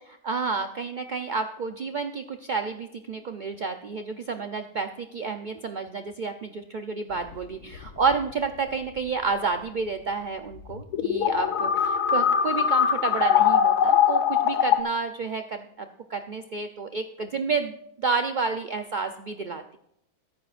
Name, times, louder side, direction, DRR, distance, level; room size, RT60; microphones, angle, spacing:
voice 1, 0.2-19.8, right 4 dB, 55° right, 6 dB, 0.5 m, -30 dB
sound 1, 7.3-7.4 7.7-8.5 10.7-14.8, left 8 dB, 85° left, 1.4 m, -22 dB
22.0 x 11.0 x 2.5 m, 0.75 s
omnidirectional pair, 1.6 m